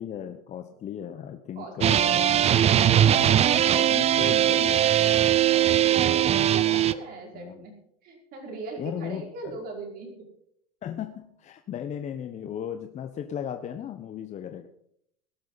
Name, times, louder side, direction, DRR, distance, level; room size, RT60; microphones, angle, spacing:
voice 1, 0.0-2.5 3.2-5.0 7.3-7.6 8.8-9.3 10.8-14.7, left 9 dB, 35° left, 7 dB, 1.0 m, -36 dB
voice 2, 1.6-2.2 5.5-7.7 8.0-10.3, right 3 dB, 50° right, 1 dB, 5.5 m, -40 dB
sound 1, 1.8-6.9, right 11 dB, 30° right, 0.7 m, -20 dB
18.5 x 12.0 x 4.1 m, 0.70 s
hypercardioid pair, 95°, 20 cm